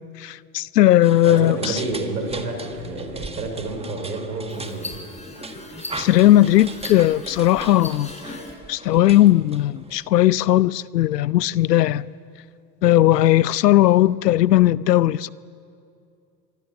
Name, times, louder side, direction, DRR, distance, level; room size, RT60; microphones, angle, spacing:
voice 1, 0.2-1.8 6.0-8.3 8.7-12.1 12.8-15.3, left 14 dB, 80° left, 0.7 m, -17 dB
sound 1, 1.0-10.0, right 3 dB, 10° right, 1.7 m, -39 dB
voice 2, 1.2-5.0, right 2 dB, 85° right, 5.0 m, -29 dB
sound 2, 4.5-8.5, left 2 dB, 15° left, 5.4 m, -38 dB
27.0 x 23.0 x 7.0 m
hypercardioid pair, 75°, 48 cm